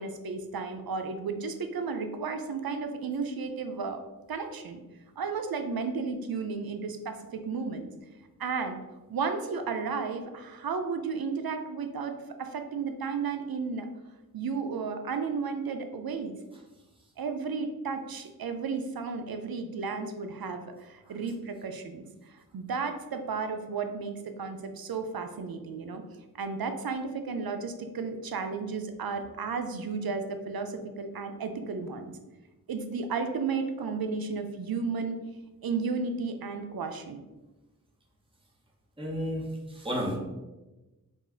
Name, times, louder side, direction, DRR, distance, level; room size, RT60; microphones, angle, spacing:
voice 1, 0.0-4.0 4.3-4.8 5.2-7.9 8.4-8.8 9.1-13.9 14.3-16.4 17.2-22.0 22.3-26.0 26.4-32.1 32.7-35.2 35.6-37.2, right 5 dB, 85° right, 7 dB, 0.5 m, -33 dB
voice 2, 39.0-39.4 39.7-40.2, equal, 15° right, -4 dB, 1.2 m, -31 dB
4.4 x 2.4 x 4.3 m, 1.1 s
wide cardioid pair, 45°, 35 cm